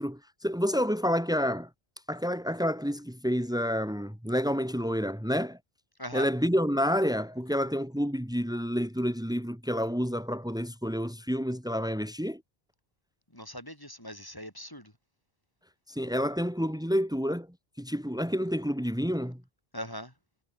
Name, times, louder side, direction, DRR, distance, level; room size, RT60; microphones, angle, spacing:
voice 1, 0.0-1.7 2.1-5.6 6.1-12.4 15.9-17.5 17.8-19.4, equal, 5° right, 4.8 m, -29 dB
voice 2, 13.3-14.9 19.7-20.1, equal, 20° left, 6.0 m, -40 dB
omnidirectional pair, 1.0 m